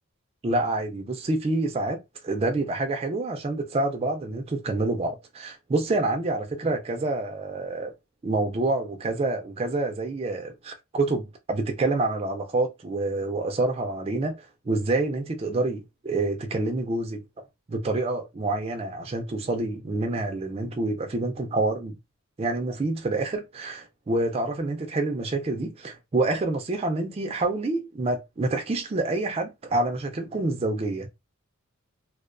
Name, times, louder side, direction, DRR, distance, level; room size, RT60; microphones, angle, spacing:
voice 1, 0.4-7.9 8.2-17.2 17.7-22.0 22.4-31.1, right 2 dB, 30° right, 0.4 m, -27 dB
2.3 x 2.2 x 2.4 m
head